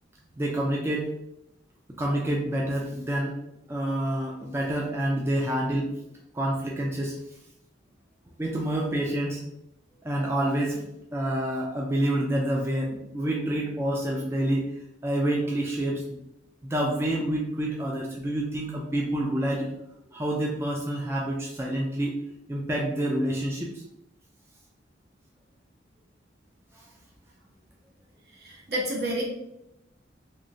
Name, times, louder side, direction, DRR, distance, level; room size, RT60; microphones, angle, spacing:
voice 1, 0.4-1.1 2.0-3.4 3.7-5.9 6.3-7.2 8.4-9.4 10.0-10.8 11.1-14.7 15.0-16.2 16.6-19.7 20.1-22.2 22.5-23.8, right 1 dB, 15° right, -2 dB, 0.3 m, -28 dB
voice 2, 28.3-29.2, right 1 dB, 60° right, -3 dB, 1.1 m, -30 dB
3.1 x 2.9 x 2.6 m, 0.85 s
head